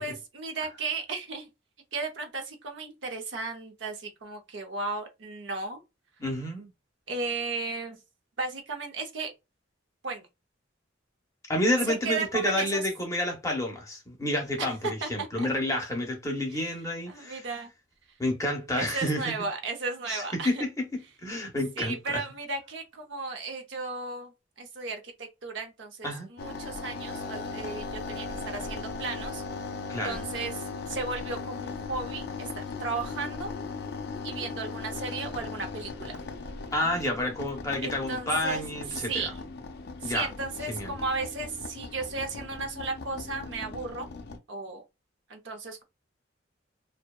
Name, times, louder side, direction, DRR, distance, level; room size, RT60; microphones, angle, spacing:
voice 1, 0.0-1.5 1.9-5.8 7.1-8.0 8.4-9.3 10.0-10.3 11.9-12.8 14.6-14.7 15.0-15.5 16.5-16.7 17.1-17.7 18.7-20.6 21.8-29.4 30.0-33.5 34.2-36.2 37.8-38.6 38.9-39.4 40.0-44.1 44.5-44.8 45.3-45.8, right 3 dB, 70° right, 0.7 m, -35 dB
voice 2, 6.2-6.7 11.5-17.4 18.2-19.3 20.1-20.8 21.2-22.2 26.0-26.3 29.9-30.2 36.7-39.3 40.0-40.3 40.7-40.9, left 1 dB, 15° left, 0.6 m, -29 dB
sound 1, 26.4-44.4, left 4 dB, 55° left, 0.4 m, -38 dB
2.7 x 2.1 x 2.2 m
head